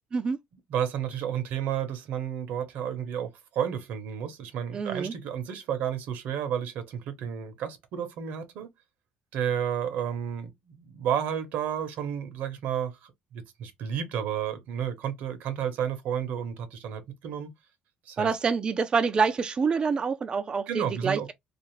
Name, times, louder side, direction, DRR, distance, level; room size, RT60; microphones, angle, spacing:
voice 1, 0.7-8.7 9.3-17.5 18.1-18.3 20.7-21.3, right 9 dB, 75° right, 0.7 m, -32 dB
voice 2, 4.7-5.1 18.2-21.3, right 5 dB, 35° right, 0.3 m, -26 dB
2.4 x 2.4 x 3.0 m
cardioid pair, 95°, 3 cm